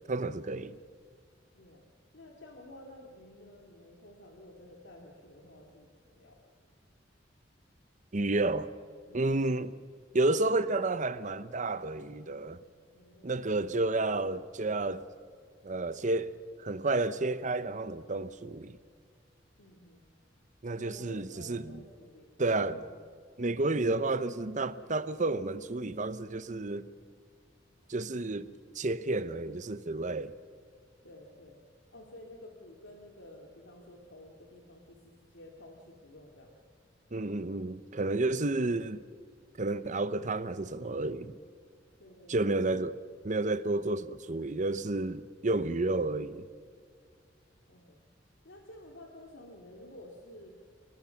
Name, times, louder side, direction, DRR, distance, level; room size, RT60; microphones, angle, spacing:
voice 1, 0.1-0.8 8.1-8.7 9.1-9.8 10.1-12.6 13.2-15.0 15.6-16.3 16.6-18.8 20.6-21.8 22.4-22.8 23.4-26.8 27.9-28.5 28.7-30.3 37.1-39.0 39.6-41.4 42.3-42.9 43.2-46.5, right 2 dB, 40° right, 0.9 m, -31 dB
voice 2, 2.1-6.4 9.1-9.3 12.9-13.6 19.6-20.1 20.8-23.0 27.9-28.1 31.0-31.6 31.9-36.5 42.0-42.9 47.7-48.0 48.4-50.5, left 1 dB, 85° left, 2.7 m, -52 dB
30.0 x 19.5 x 5.9 m
head